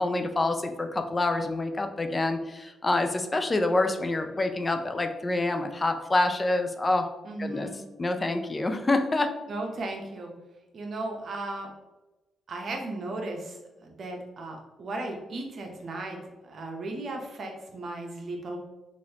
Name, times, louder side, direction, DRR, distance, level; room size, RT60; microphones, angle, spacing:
voice 1, 0.0-7.1 7.4-7.7 8.0-9.3, left 2 dB, 30° left, 6 dB, 0.3 m, -27 dB
voice 2, 7.2-7.8 9.5-10.3 10.7-11.7 12.5-18.6, right 2 dB, 60° right, 2 dB, 0.7 m, -36 dB
3.1 x 2.5 x 2.8 m, 1.1 s
supercardioid pair, 55°, 0 cm